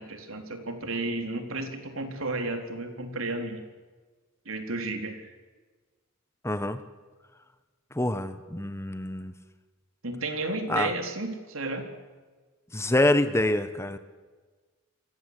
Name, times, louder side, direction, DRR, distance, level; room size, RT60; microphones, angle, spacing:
voice 1, 0.0-3.6 4.5-5.3 10.0-11.9, right 2 dB, 70° right, 5 dB, 4.0 m, -32 dB
voice 2, 6.4-6.8 7.9-9.3 10.7-10.9 12.7-14.0, left 1 dB, 15° left, 11 dB, 1.2 m, -26 dB
28.5 x 23.5 x 8.4 m, 1.4 s
head